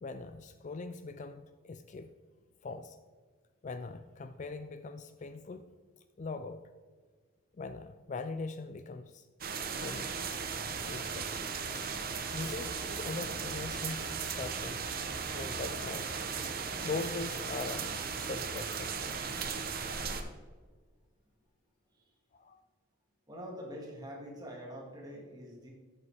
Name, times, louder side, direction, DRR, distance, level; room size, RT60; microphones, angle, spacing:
voice 1, 0.0-2.1 2.6-3.0 3.6-5.7 6.2-6.6 7.6-9.3 9.8-10.1 10.8-11.3 11.7-11.9 12.3-14.1 14.4-14.8 15.3-17.9 18.2-19.1 22.3-22.6, left 3 dB, 35° left, 10 dB, 0.3 m, -41 dB
sound 1, 9.4-20.2, right 5 dB, 45° right, 0.8 m, -37 dB
voice 2, 23.3-25.7, equal, 20° right, -2 dB, 2.0 m, -44 dB
13.5 x 6.7 x 3.4 m, 1.5 s
head